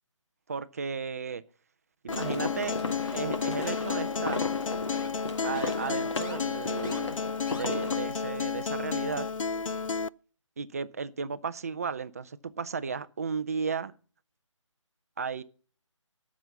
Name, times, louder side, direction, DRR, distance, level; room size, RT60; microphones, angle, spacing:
voice 1, 0.5-1.4 2.0-2.8 3.1-4.5 5.4-7.1 7.5-9.3 10.6-13.9 15.2-15.4, right 5 dB, 30° right, 0.5 m, -34 dB
Acoustic guitar, 2.1-10.1, left 5 dB, 80° left, 0.5 m, -32 dB
sound 1, 2.1-7.9, left 3 dB, 60° left, 1.7 m, -36 dB
sound 2, 3.0-3.3 3.6-3.9 4.3-4.6 4.9-5.1 5.6-5.7 6.2-6.4 6.8-7.0 7.5-7.6, left 3 dB, 40° left, 2.6 m, -43 dB
14.0 x 6.2 x 6.9 m
figure-of-eight pair, 165°, 17 cm